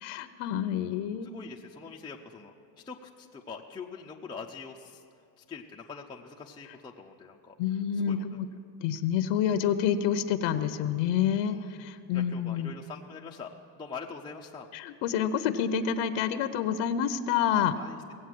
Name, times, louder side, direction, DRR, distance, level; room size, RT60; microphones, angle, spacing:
voice 1, 0.0-1.3 7.6-8.5 8.8-12.7 14.7-17.7, left 9 dB, 80° left, 10 dB, 0.9 m, -28 dB
voice 2, 1.2-2.5 2.9-5.0 5.4-7.5 7.9-8.2 11.3-11.8 12.1-13.5 13.8-14.7 17.8-18.1, left 5 dB, 10° left, -1 dB, 0.4 m, -44 dB
17.5 x 8.0 x 7.6 m, 2.4 s
cardioid pair, 145°, 47 cm